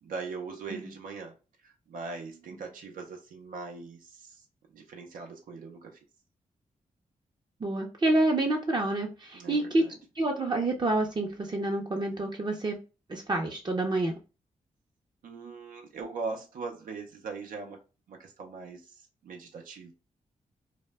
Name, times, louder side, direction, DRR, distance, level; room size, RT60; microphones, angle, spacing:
voice 1, 0.0-1.3 1.6-4.4 4.7-6.0 9.3-9.9 15.2-17.8 18.1-19.9, right 4 dB, 90° right, 2 dB, 0.5 m, -40 dB
voice 2, 7.6-9.8 10.2-12.8 13.1-14.1, right 2 dB, 35° right, 1 dB, 0.5 m, -28 dB
2.1 x 2.0 x 3.3 m, 0.32 s
cardioid pair, 65°, 14 cm